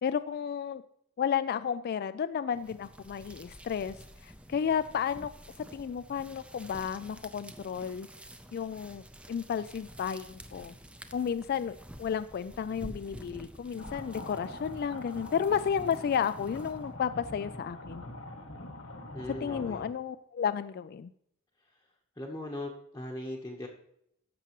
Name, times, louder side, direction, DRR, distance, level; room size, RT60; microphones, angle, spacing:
voice 1, 0.0-0.8 1.2-4.0 4.2-5.3 5.6-8.1 8.5-9.0 9.3-10.7 11.1-18.1 19.4-21.1, left 7 dB, 50° left, 13 dB, 0.3 m, -32 dB
sound 1, 2.5-17.0, right 1 dB, 5° right, 0.5 m, -50 dB
sound 2, 13.8-19.9, left 1 dB, 85° left, 1.4 m, -44 dB
voice 2, 19.1-19.8 22.2-23.7, left 1 dB, 15° left, -1 dB, 0.9 m, -39 dB
14.0 x 5.9 x 3.0 m, 0.72 s
head